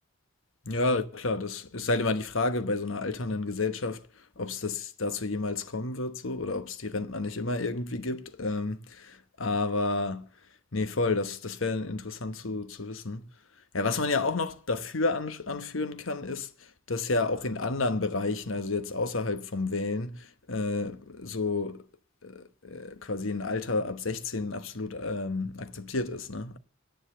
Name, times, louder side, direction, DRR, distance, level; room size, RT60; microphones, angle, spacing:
voice 1, 0.6-4.0 4.4-10.3 10.7-13.3 13.7-21.8 22.2-26.6, left 3 dB, 70° left, 1.2 m, -31 dB
10.5 x 9.0 x 8.0 m
head